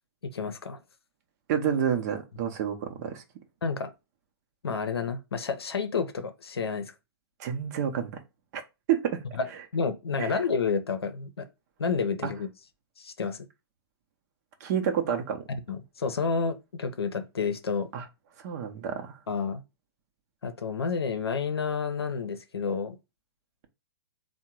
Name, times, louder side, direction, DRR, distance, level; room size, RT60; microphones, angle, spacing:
voice 1, 0.2-0.8 3.6-3.9 4.6-6.9 9.3-9.5 9.7-11.5 11.8-12.5 13.0-13.4 15.5-17.9 19.3-19.6 20.4-23.0, left 5 dB, 80° left, 0.6 m, -30 dB
voice 2, 1.5-3.2 7.4-8.1 8.5-8.6 8.9-9.2 10.2-10.3 14.6-15.4 17.9-18.0 18.4-19.1, right 8 dB, 40° right, 0.8 m, -28 dB
3.6 x 2.2 x 4.4 m
figure-of-eight pair, 120°, 13 cm